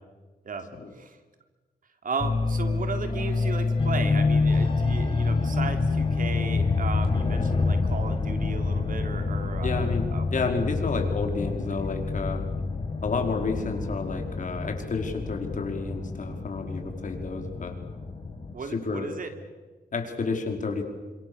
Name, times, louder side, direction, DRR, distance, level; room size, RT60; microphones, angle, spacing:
voice 1, 2.0-10.3 11.5-11.8 18.5-19.3, right 4 dB, 60° right, 6 dB, 3.4 m, -35 dB
sound 1, 2.2-18.5, left 3 dB, 35° left, 5.5 m, -27 dB
voice 2, 9.6-10.1 10.3-12.5 13.0-17.8 18.7-19.1 19.9-20.9, left 4 dB, 55° left, 3 dB, 4.9 m, -30 dB
29.0 x 26.5 x 7.1 m, 1.3 s
cardioid pair, 95°, 16 cm